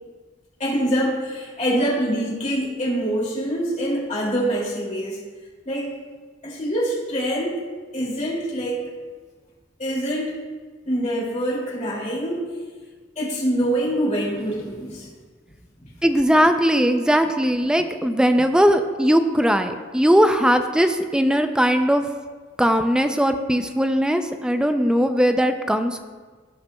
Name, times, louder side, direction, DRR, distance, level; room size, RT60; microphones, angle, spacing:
voice 1, 0.6-5.2 5.6-5.9 6.4-7.6 7.9-8.8 9.8-10.4 10.9-12.5 13.2-15.1 15.8-15.9, equal, 40° left, -4 dB, 2.5 m, -25 dB
voice 2, 16.0-22.0 22.6-26.0, equal, 5° right, 7 dB, 0.4 m, -19 dB
17.0 x 5.7 x 2.2 m, 1.5 s
head